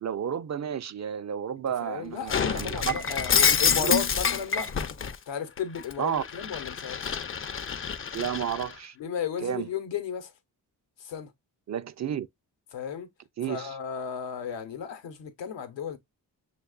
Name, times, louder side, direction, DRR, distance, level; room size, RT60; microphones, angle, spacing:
voice 1, 0.0-2.9 3.5-3.9 6.0-6.2 8.1-9.0 9.4-9.7 11.7-12.3 13.4-13.7, right 9 dB, 40° right, 0.4 m, -31 dB
voice 2, 1.8-4.7 5.3-7.0 9.0-10.3 11.0-11.3 12.7-13.1 13.4-16.0, left 7 dB, 80° left, 0.9 m, -34 dB
Shatter, 2.3-5.1 5.6-8.7, left 6 dB, 30° left, 0.4 m, -27 dB
6.3 x 2.3 x 2.2 m
supercardioid pair, 45°, 44 cm